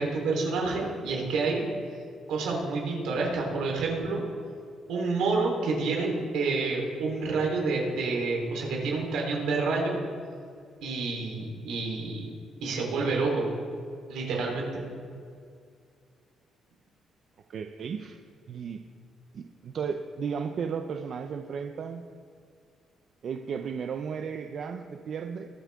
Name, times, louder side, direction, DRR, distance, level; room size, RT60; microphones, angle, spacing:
voice 1, 0.0-1.6 2.3-4.2 4.9-10.0 10.8-12.3 12.6-13.5 14.1-14.8, right 3 dB, 85° right, -2 dB, 3.7 m, -28 dB
voice 2, 17.5-18.2 18.5-18.8 19.3-22.0 23.2-25.5, right 6 dB, 60° right, 6 dB, 0.6 m, -34 dB
22.0 x 7.5 x 3.6 m, 2.2 s
cardioid pair, 90°, 0 cm